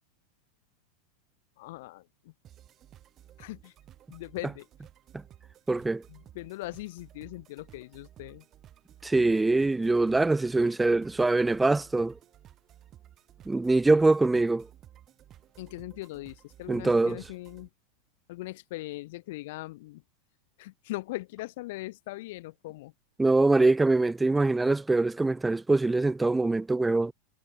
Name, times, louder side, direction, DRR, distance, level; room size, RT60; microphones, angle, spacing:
voice 1, 1.6-2.3 3.4-3.7 4.1-4.7 6.1-8.5 15.6-17.7 18.3-20.0 20.6-22.9, left 19 dB, 50° left, 5.6 m, -40 dB
sound 1, 2.4-17.7, right 11 dB, 30° right, 5.0 m, -55 dB
voice 2, 5.7-6.0 9.0-12.2 13.5-14.7 16.7-17.2 23.2-27.1, right 2 dB, 10° right, 0.7 m, -23 dB
figure-of-eight pair, 90°, 0 cm